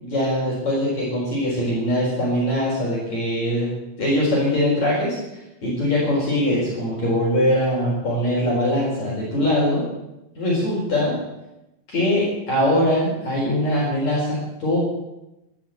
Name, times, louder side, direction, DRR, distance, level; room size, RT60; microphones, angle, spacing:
voice 1, 0.0-3.7 4.0-5.2 5.6-9.9 10.4-11.1 11.9-14.8, left 1 dB, 35° left, -5 dB, 5.4 m, -22 dB
13.5 x 13.0 x 7.9 m, 0.94 s
omnidirectional pair, 5.9 m